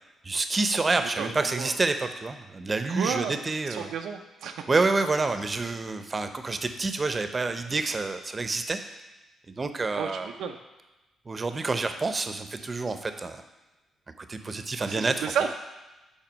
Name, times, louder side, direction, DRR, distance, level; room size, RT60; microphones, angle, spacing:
voice 1, 0.2-3.9 4.7-8.8 9.5-10.3 11.3-13.4 14.2-15.3, right 3 dB, 35° right, 8 dB, 0.7 m, -28 dB
voice 2, 1.2-1.7 2.9-3.4 3.7-4.7 9.9-10.5 14.8-15.5, right 7 dB, 75° right, 4 dB, 0.4 m, -32 dB
6.0 x 4.2 x 5.2 m, 1.1 s
hypercardioid pair, 50°, 0 cm